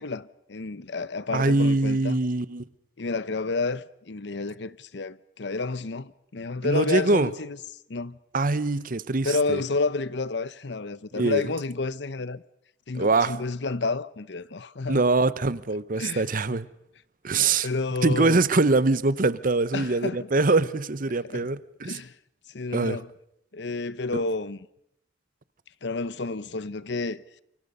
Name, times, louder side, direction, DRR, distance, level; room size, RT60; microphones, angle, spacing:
voice 1, 0.0-2.2 3.0-7.6 7.9-8.2 9.2-12.4 12.9-15.0 16.0-16.6 17.6-18.4 19.7-20.3 21.3-21.5 21.8-22.1 22.5-23.1 23.5-24.6 25.8-27.4, left 3 dB, 70° left, 0.8 m, -30 dB
voice 2, 1.3-2.6 6.6-7.3 8.3-9.6 11.1-11.4 12.9-13.3 14.9-16.7 17.2-17.7 18.0-22.0 22.7-23.0 24.1-24.2, right 3 dB, 50° right, 0.9 m, -23 dB
28.5 x 24.0 x 5.5 m
head